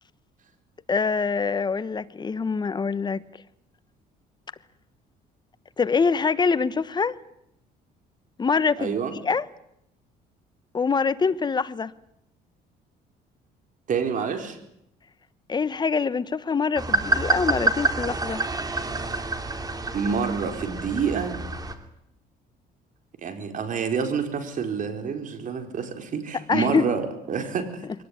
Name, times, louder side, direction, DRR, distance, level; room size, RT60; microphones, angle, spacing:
voice 1, 0.9-3.2 5.8-7.2 8.4-8.9 9.2-9.5 10.7-11.9 15.5-18.4 26.5-26.8, left 5 dB, 25° left, 1.1 m, -24 dB
voice 2, 8.8-9.1 13.9-14.6 19.9-21.4 23.2-27.9, right 6 dB, 50° right, 4.7 m, -28 dB
sound 1, 16.8-21.7, right 3 dB, 20° right, 2.8 m, -27 dB
23.0 x 18.5 x 9.9 m
cardioid pair, 110°, 17 cm